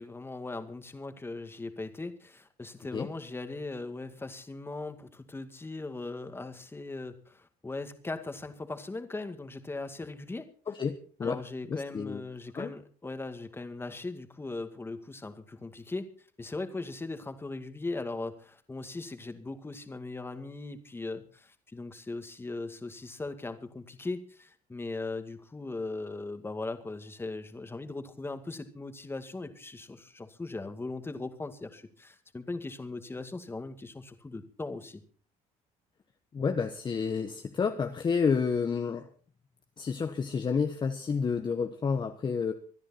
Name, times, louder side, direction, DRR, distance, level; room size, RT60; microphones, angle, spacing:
voice 1, 0.0-10.5 11.2-35.0, left 3 dB, 15° left, 8 dB, 2.1 m, -39 dB
voice 2, 10.7-11.4 11.7-12.2 12.5-12.7 36.3-39.1 39.8-42.5, left 5 dB, 30° left, 6 dB, 1.2 m, -30 dB
25.0 x 10.0 x 4.3 m, 0.41 s
cardioid pair, 110°, 15 cm